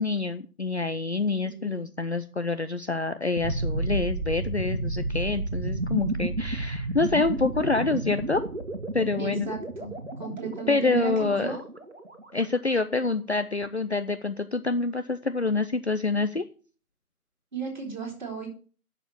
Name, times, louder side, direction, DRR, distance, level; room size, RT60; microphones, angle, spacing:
voice 1, 0.0-8.4 8.9-9.5 10.7-11.6 12.3-16.4, left 3 dB, 45° left, 10 dB, 0.7 m, -27 dB
voice 2, 1.4-1.8 9.2-9.9 10.2-11.6 17.5-18.5, right 4 dB, 30° right, -2 dB, 4.1 m, -35 dB
sound 1, 3.4-12.2, right 2 dB, 50° right, 1.9 m, -31 dB
9.3 x 6.9 x 8.5 m, 0.39 s
figure-of-eight pair, 160°, 45 cm